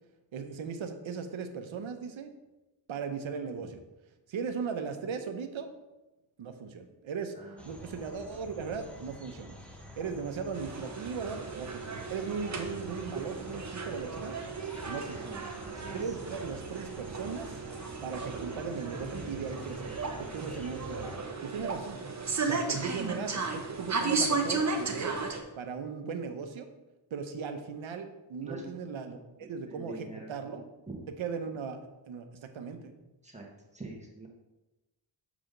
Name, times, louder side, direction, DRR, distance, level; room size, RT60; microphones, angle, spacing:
voice 1, 0.3-2.3 2.9-3.8 4.3-5.7 6.4-7.3 7.7-9.6 10.0-14.4 14.9-15.3 15.8-17.6 18.0-19.9 20.2-22.0 22.4-25.2 25.6-26.7 27.1-30.7 31.2-31.8 32.1-32.9, right 5 dB, 75° right, 7 dB, 0.8 m, -38 dB
sound 1, 7.6-21.2, equal, 5° left, 1.0 m, -47 dB
sound 2, 10.5-25.4, right 4 dB, 35° right, 1.0 m, -35 dB
voice 2, 15.0-16.1 28.4-28.6 29.4-30.3 30.9-31.0 33.2-33.4 33.7-34.3, right 3 dB, 15° right, -2 dB, 1.4 m, -45 dB
7.1 x 4.9 x 3.8 m, 1.0 s
wide cardioid pair, 85°, 47 cm